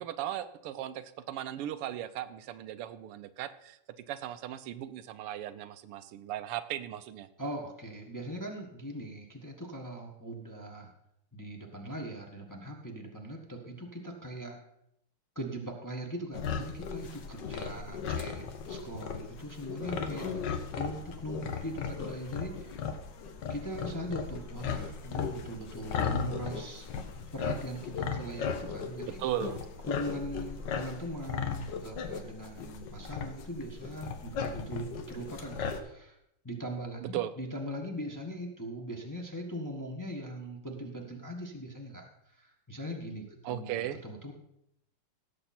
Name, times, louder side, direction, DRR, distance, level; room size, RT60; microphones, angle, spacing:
voice 1, 0.0-3.8 4.1-7.3 29.2-29.6 37.0-37.3 43.4-44.0, right 12 dB, 85° right, 12 dB, 1.6 m, -37 dB
voice 2, 7.4-10.9 11.3-14.6 15.3-20.3 20.7-22.8 23.5-29.3 29.9-36.2 36.4-44.3, equal, 10° left, 0 dB, 1.1 m, -40 dB
sound 1, 16.3-35.8, left 6 dB, 60° left, 1.5 m, -36 dB
17.0 x 7.5 x 4.3 m, 0.78 s
omnidirectional pair, 2.4 m